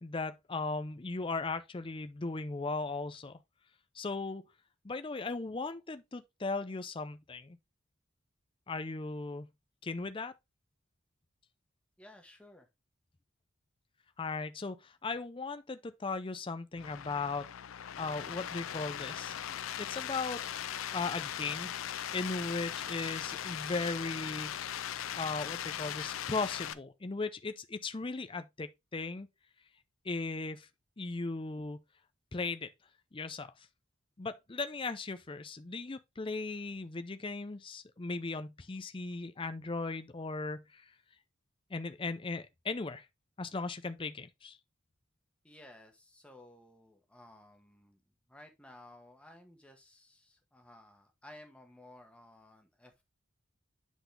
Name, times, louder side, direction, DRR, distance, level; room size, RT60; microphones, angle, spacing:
voice 1, 0.0-3.4 4.0-4.4 4.8-7.6 8.7-9.5 9.8-10.3 14.2-17.5 18.0-19.3 19.8-20.4 20.9-21.7 22.1-24.5 25.1-29.3 30.0-30.7 31.0-31.8 32.3-32.7 33.1-33.5 34.2-40.8 41.7-43.1 43.4-44.6, left 3 dB, 25° left, 0.5 m, -37 dB
voice 2, 12.0-12.7 45.4-48.0 48.3-53.0, left 1 dB, 5° left, 1.2 m, -56 dB
sound 1, 16.8-26.7, left 10 dB, 75° left, 0.5 m, -39 dB
8.1 x 4.0 x 3.3 m
head